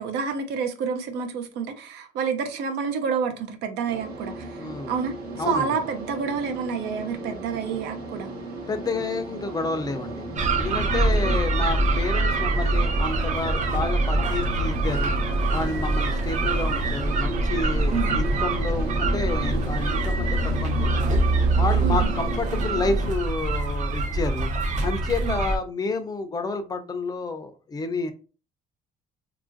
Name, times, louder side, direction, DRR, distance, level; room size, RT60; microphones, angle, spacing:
voice 1, 0.0-5.1 5.4-8.3 10.9-11.4 17.9-18.2 21.8-22.1 25.2-25.4, right 6 dB, 90° right, 0.6 m, -29 dB
sound 1, 3.9-23.1, right 2 dB, 65° right, 1.0 m, -35 dB
voice 2, 4.6-4.9 5.4-5.8 8.7-10.3 10.5-15.2 15.5-21.2 21.6-24.5 24.8-28.1, left 3 dB, 25° left, 0.3 m, -30 dB
sound 2, 10.4-25.6, right 2 dB, 45° right, 0.5 m, -24 dB
2.9 x 2.4 x 2.5 m
cardioid pair, 110°, 17 cm